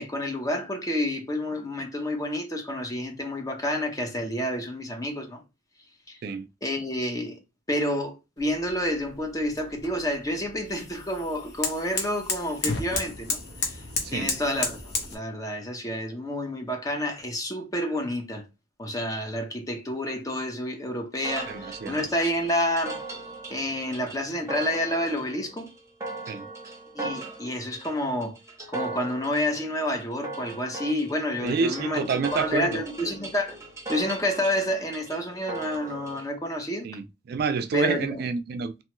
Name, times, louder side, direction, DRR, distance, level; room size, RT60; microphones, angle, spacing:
voice 1, 0.0-5.4 6.1-6.2 6.6-7.4 7.7-13.8 14.1-14.8 15.1-18.4 18.8-23.0 23.5-25.7 26.9-28.4 28.7-33.6 33.9-36.9 37.7-38.2, left 1 dB, 20° left, 0.6 m, -29 dB
sound 1, 8.4-15.1, left 4 dB, 55° left, 0.8 m, -33 dB
sound 2, 21.2-36.2, right 3 dB, 15° right, 0.8 m, -39 dB
voice 2, 21.5-22.0 26.3-26.5 31.4-32.8 36.8-38.8, right 4 dB, 55° right, 0.3 m, -28 dB
2.9 x 2.2 x 3.0 m
head